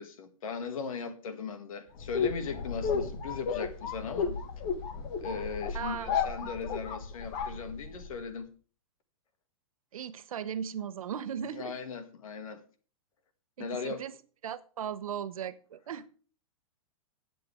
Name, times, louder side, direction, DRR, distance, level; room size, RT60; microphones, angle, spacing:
voice 1, 0.0-4.4 5.2-8.5 11.4-12.6 13.6-14.1, left 5 dB, 80° left, 2.2 m, -38 dB
sound 1, 2.0-8.2, left 6 dB, 45° left, 1.6 m, -33 dB
voice 2, 5.7-6.5 9.9-11.7 13.6-14.1 14.4-16.0, right 8 dB, 85° right, 1.0 m, -37 dB
18.0 x 7.7 x 3.5 m
hypercardioid pair, 145°, 17 cm